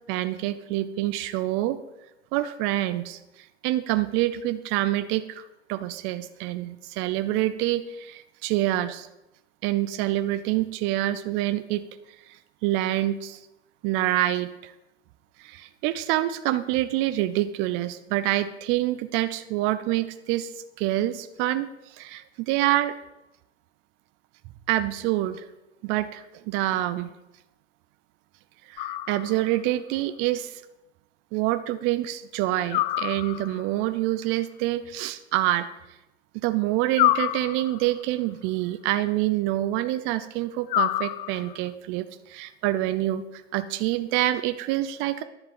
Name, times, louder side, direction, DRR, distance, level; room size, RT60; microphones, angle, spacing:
voice 1, 0.1-1.8 2.3-5.4 5.7-9.1 9.6-11.8 12.3-13.4 13.8-14.7 15.4-22.9 24.7-25.5 25.8-27.1 28.7-30.6 31.3-35.7 36.4-45.2, right 14 dB, 35° right, 12 dB, 0.7 m, -26 dB
sound 1, 28.8-29.6 32.7-33.7 36.9-38.0 40.7-41.7, left 16 dB, 45° left, 0.5 m, -27 dB
10.5 x 7.3 x 7.7 m, 0.94 s
hypercardioid pair, 105°, 35 cm